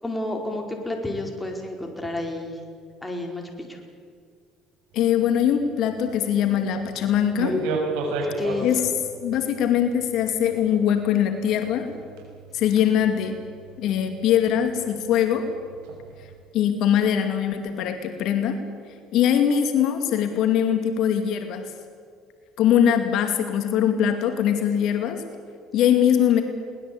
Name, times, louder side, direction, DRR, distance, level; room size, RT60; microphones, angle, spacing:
voice 1, 0.0-2.6 3.0-3.4 3.7-3.8 8.4-8.7, left 2 dB, 10° left, 2 dB, 4.7 m, -30 dB
voice 2, 4.9-7.6 8.6-8.8 9.2-11.9 12.5-13.4 13.8-15.5 16.5-18.6 19.1-21.7 22.6-25.2 25.7-26.4, left 9 dB, 65° left, 6 dB, 2.4 m, -22 dB
sound 1, 4.9-16.3, right 2 dB, 85° right, 6.3 m, -35 dB
22.5 x 19.5 x 8.6 m, 2.1 s
cardioid pair, 110°, 0 cm